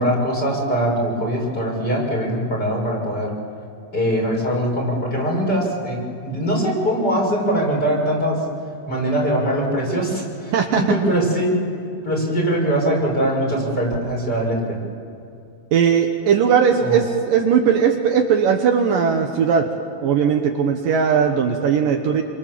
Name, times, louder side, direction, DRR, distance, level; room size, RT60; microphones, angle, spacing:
voice 1, 0.0-3.3 3.9-8.4 8.9-11.6 12.0-14.8 16.8-17.0, right 1 dB, 25° left, -2 dB, 6.3 m, -22 dB
voice 2, 10.5-10.8 15.7-19.7 20.0-22.2, right 7 dB, 65° right, 3 dB, 2.7 m, -18 dB
28.0 x 26.5 x 7.6 m, 2.6 s
omnidirectional pair, 4.6 m